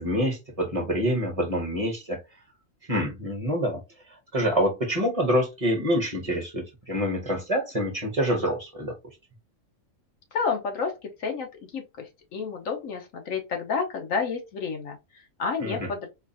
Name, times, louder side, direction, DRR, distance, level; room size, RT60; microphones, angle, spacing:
voice 1, 0.0-2.2 2.9-3.8 4.3-8.9 15.6-15.9, equal, 30° right, 1.0 m, -26 dB
voice 2, 10.3-16.1, left 5 dB, 80° left, 1.3 m, -30 dB
4.5 x 2.4 x 2.7 m
omnidirectional pair, 1.4 m